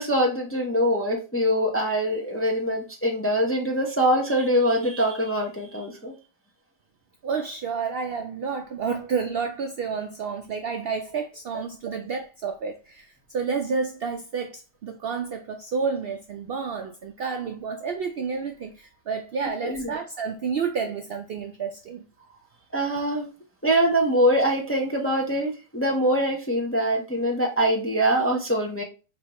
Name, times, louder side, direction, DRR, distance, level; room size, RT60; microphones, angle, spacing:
voice 1, 0.0-6.1 19.6-19.9 22.7-23.3 23.6-28.8, equal, 15° left, 0.6 m, -23 dB
voice 2, 7.2-22.0, right 5 dB, 65° right, 0.6 m, -30 dB
5.0 x 2.7 x 3.0 m
omnidirectional pair, 1.4 m